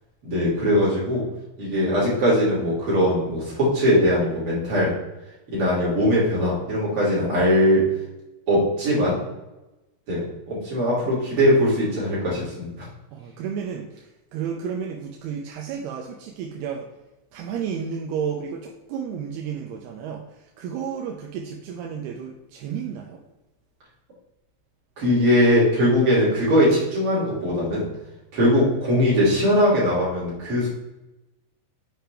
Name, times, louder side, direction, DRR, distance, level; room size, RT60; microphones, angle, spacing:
voice 1, 0.2-1.2 1.6-4.9 5.5-7.8 8.5-9.2 10.1-12.7 25.0-27.9 28.3-30.7, equal, 35° right, -7 dB, 3.1 m, -20 dB
voice 2, 13.1-16.9 17.3-23.2, right 7 dB, 80° right, 1 dB, 2.3 m, -32 dB
7.7 x 5.5 x 3.5 m, 1.0 s
omnidirectional pair, 5.2 m